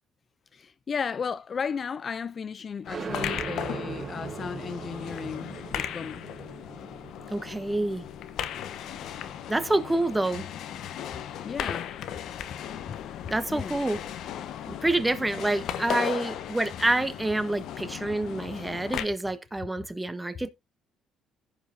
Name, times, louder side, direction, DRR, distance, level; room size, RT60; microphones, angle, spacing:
voice 1, 0.5-6.2 11.4-11.9 12.5-12.6 12.9-13.0 13.5-13.8, left 6 dB, 40° left, 0.4 m, -34 dB
sound 1, 2.8-19.0, left 10 dB, 70° left, 0.9 m, -36 dB
sound 2, 2.9-10.2, right 6 dB, 40° right, 0.9 m, -40 dB
voice 2, 7.3-8.0 9.5-10.5 13.3-14.0 14.7-20.5, right 2 dB, 10° right, 1.1 m, -27 dB
15.5 x 5.3 x 2.6 m
cardioid pair, 100°, 0 cm